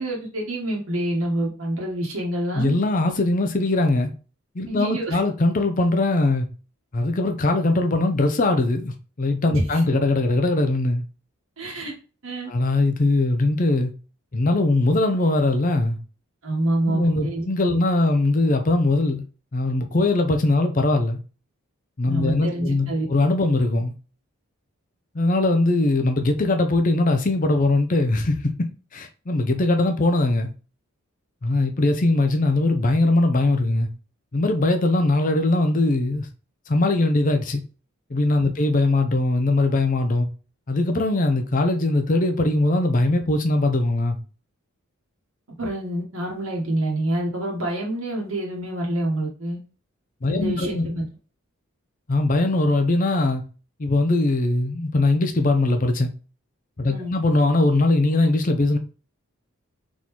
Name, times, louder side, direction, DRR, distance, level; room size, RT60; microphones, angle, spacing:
voice 1, 0.0-2.8 4.7-5.2 9.7-9.8 11.6-11.9 12.2-12.5 16.4-17.5 22.1-23.1 45.6-49.6 50.3-51.1 56.9-57.2, right 1 dB, 65° right, 1.2 m, -27 dB
voice 2, 2.5-4.1 4.5-6.5 6.9-11.0 12.5-13.9 14.3-16.0 16.9-19.2 19.5-21.2 22.0-23.9 25.1-30.5 31.4-33.9 34.3-36.3 36.7-37.6 38.1-40.3 40.7-44.2 50.2-50.9 52.1-53.4 53.8-56.1 56.8-58.8, left 2 dB, 35° left, 0.5 m, -21 dB
4.2 x 3.6 x 3.0 m
head